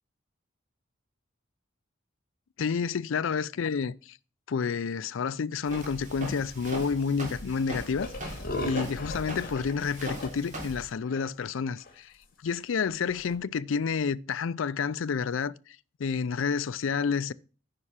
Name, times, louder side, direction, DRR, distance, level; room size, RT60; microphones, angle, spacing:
voice 1, 2.6-4.2 4.5-8.4 8.6-12.1 12.4-15.5 16.0-17.3, left 5 dB, 75° left, 0.4 m, -29 dB
Walk footsteps, 5.7-10.9, equal, 40° right, 3.6 m, -40 dB
sound 1, 8.0-10.3 10.6-10.7 11.0-11.3 11.6-11.9 12.5-12.6 13.1-13.3, left 1 dB, 50° left, 2.2 m, -37 dB
9.7 x 5.5 x 5.6 m
head